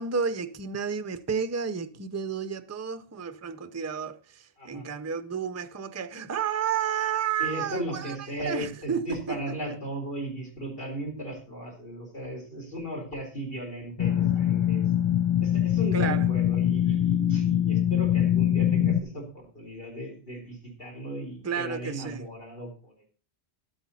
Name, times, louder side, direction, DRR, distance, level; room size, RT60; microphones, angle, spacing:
voice 1, 0.0-9.8 15.9-16.3 21.4-22.3, right 7 dB, 20° right, 0.5 m, -31 dB
voice 2, 7.4-14.8 15.4-23.1, right 1 dB, 60° left, 4.2 m, -36 dB
sound 1, 14.0-19.0, left 10 dB, 35° left, 0.5 m, -23 dB
12.0 x 8.2 x 4.2 m
omnidirectional pair, 1.1 m